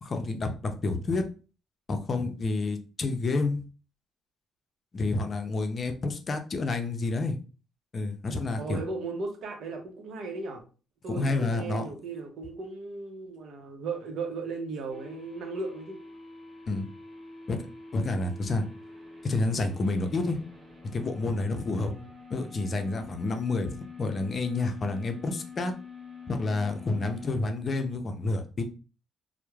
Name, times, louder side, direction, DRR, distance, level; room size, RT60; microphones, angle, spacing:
voice 1, 0.0-1.2 1.9-3.6 4.9-7.4 7.9-8.8 11.1-11.9 16.7-16.9 17.5-17.6 17.9-18.6 19.2-20.4 20.9-21.9 22.3-25.7 26.3-28.6, left 3 dB, 45° left, 6 dB, 0.5 m, -29 dB
voice 2, 8.6-10.6 11.0-16.0 21.7-22.0, right 3 dB, 65° right, 4 dB, 0.7 m, -36 dB
sound 1, 14.9-27.4, left 4 dB, 25° right, 1.0 m, -46 dB
2.9 x 2.1 x 2.3 m, 0.36 s
supercardioid pair, 70°, 0 cm